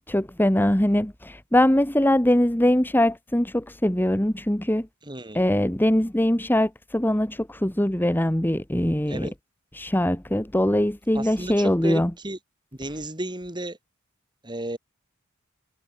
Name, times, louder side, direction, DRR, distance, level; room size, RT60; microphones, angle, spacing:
voice 1, 0.1-4.9 5.3-9.3 9.7-12.1, left 1 dB, 10° left, 1.2 m, -22 dB
voice 2, 5.0-5.4 9.1-9.3 11.1-12.4 12.8-13.8 14.4-14.8, right 1 dB, 20° right, 3.8 m, -33 dB
head